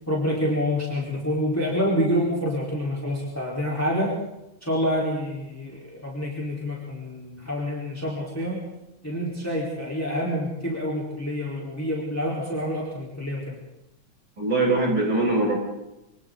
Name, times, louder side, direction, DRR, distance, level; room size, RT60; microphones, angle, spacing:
voice 1, 0.1-4.1 4.6-8.7 9.0-13.6, equal, 5° left, -5 dB, 4.2 m, -27 dB
voice 2, 14.4-15.6, right 2 dB, 85° right, -1 dB, 7.2 m, -22 dB
28.0 x 25.5 x 4.0 m, 0.91 s
omnidirectional pair, 2.2 m